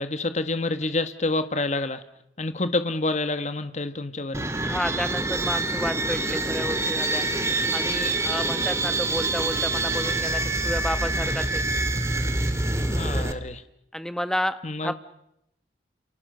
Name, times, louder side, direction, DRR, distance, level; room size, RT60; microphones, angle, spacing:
voice 1, 0.0-2.0 2.4-4.4 12.9-13.6 14.6-14.9, left 2 dB, 40° left, 11 dB, 1.2 m, -28 dB
sound 1, 4.3-13.3, right 2 dB, 15° right, 1.9 m, -26 dB
voice 2, 4.6-7.2 7.7-11.6 13.9-14.9, equal, 5° left, 11 dB, 1.1 m, -31 dB
29.5 x 28.5 x 6.7 m, 0.81 s
head